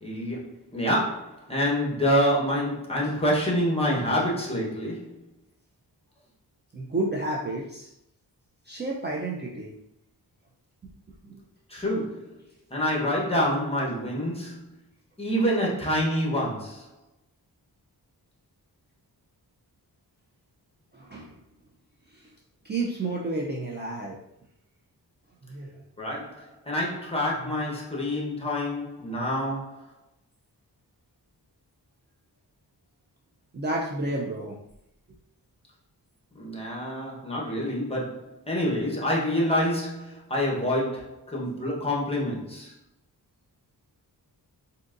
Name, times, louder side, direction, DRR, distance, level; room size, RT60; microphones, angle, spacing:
voice 1, 0.0-5.2 11.7-12.4 12.7-14.7 15.2-16.9 26.0-29.8 36.3-42.7, equal, 15° left, -4 dB, 0.9 m, -27 dB
voice 2, 6.7-7.9 8.7-9.7 11.3-11.4 20.9-21.3 22.1-22.2 22.6-24.2 25.5-25.7 33.5-34.6, right 2 dB, 25° right, -3 dB, 0.4 m, -31 dB
3.9 x 2.7 x 2.5 m, 0.76 s
wide cardioid pair, 95°, 40 cm